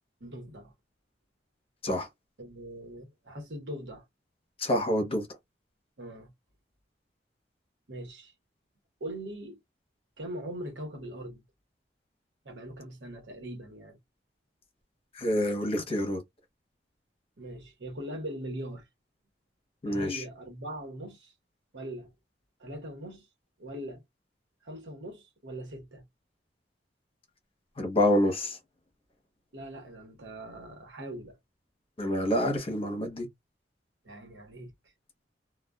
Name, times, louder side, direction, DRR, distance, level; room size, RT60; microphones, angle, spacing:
voice 1, 0.2-0.7 2.4-4.0 6.0-6.3 7.9-8.3 9.0-9.6 10.2-11.4 12.4-14.0 17.4-18.9 19.8-21.3 21.7-22.1 22.6-23.3 23.6-24.0 24.6-26.0 29.5-31.4 34.0-34.7, right 1 dB, 85° right, 1.0 m, -41 dB
voice 2, 4.6-5.3 15.1-16.2 19.8-20.2 27.8-28.6 32.0-33.3, left 1 dB, 35° left, 0.9 m, -27 dB
2.3 x 2.3 x 2.3 m
head